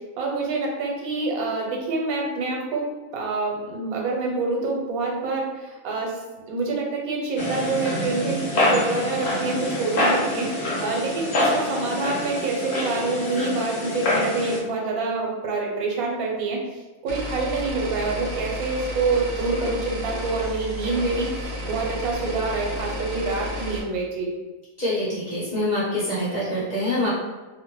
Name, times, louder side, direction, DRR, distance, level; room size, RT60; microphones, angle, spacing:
voice 1, 0.2-6.2 6.5-16.6 17.0-24.3, right 3 dB, 80° right, -1 dB, 1.1 m, -26 dB
sound 1, 7.4-14.6, left 1 dB, 55° left, 0.9 m, -26 dB
sound 2, 17.1-23.8, left 1 dB, 65° right, 0.8 m, -32 dB
voice 2, 24.8-27.1, left 1 dB, 15° left, -10 dB, 0.6 m, -25 dB
2.6 x 2.1 x 3.0 m, 1.2 s
omnidirectional pair, 1.5 m